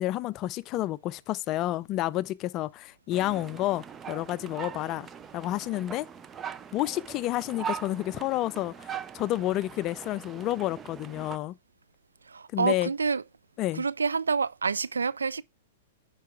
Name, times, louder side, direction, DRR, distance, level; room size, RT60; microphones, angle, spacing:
voice 1, 0.0-5.1 5.3-6.1 6.7-11.5 12.5-12.9 13.6-13.8, left 15 dB, 35° left, 0.4 m, -30 dB
sound 1, 3.1-11.4, right 8 dB, 20° right, 0.6 m, -41 dB
voice 2, 12.2-13.2 13.7-15.4, right 5 dB, 90° right, 0.4 m, -28 dB
9.4 x 4.7 x 4.4 m
hypercardioid pair, 115°, 0 cm